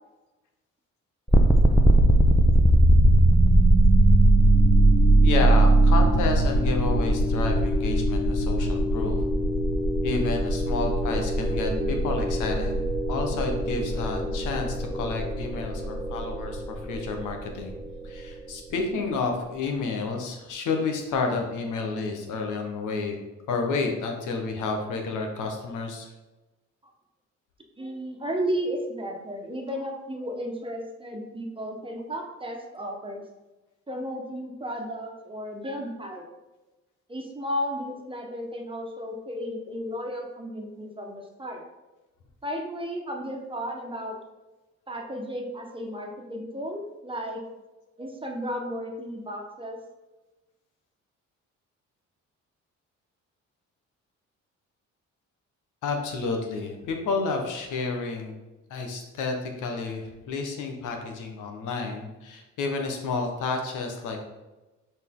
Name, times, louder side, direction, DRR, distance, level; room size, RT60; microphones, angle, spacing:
sound 1, 1.3-18.2, right 1 dB, ahead, 0.7 m, -21 dB
voice 1, 5.2-9.2 10.0-12.8 13.1-17.7 18.0-23.2 23.5-26.1 55.8-58.3 58.7-64.2, left 4 dB, 85° left, 3 dB, 1.2 m, -30 dB
voice 2, 27.8-33.2 33.9-36.2 37.1-41.6 42.4-44.2 44.9-47.4 48.0-49.8, equal, 15° right, 1 dB, 1.3 m, -34 dB
6.6 x 4.4 x 3.7 m, 1.1 s
cardioid pair, 90°, 30 cm